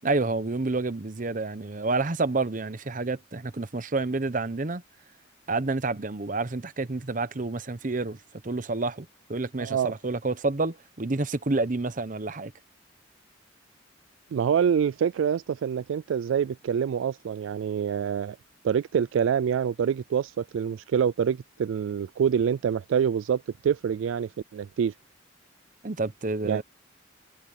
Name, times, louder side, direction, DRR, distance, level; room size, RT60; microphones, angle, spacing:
voice 1, 0.0-4.8 5.5-12.5 25.8-26.6, right 3 dB, 40° right, 0.9 m, -29 dB
voice 2, 9.6-9.9 14.3-18.4 18.6-24.9 26.4-26.6, right 7 dB, 75° right, 0.3 m, -26 dB
head